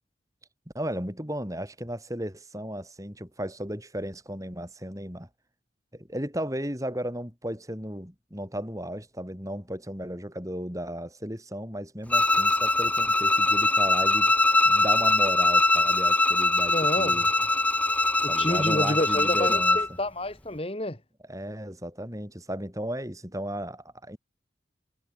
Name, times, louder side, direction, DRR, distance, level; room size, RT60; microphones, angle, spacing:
voice 1, 0.7-5.3 5.9-14.3 14.7-17.3 18.3-20.0 21.3-24.2, equal, 15° right, 7.0 m, -35 dB
Bowed string instrument, 12.1-19.9, left 2 dB, 10° left, 2.9 m, -22 dB
voice 2, 16.7-17.2 18.2-21.0, left 1 dB, 30° left, 2.0 m, -29 dB
head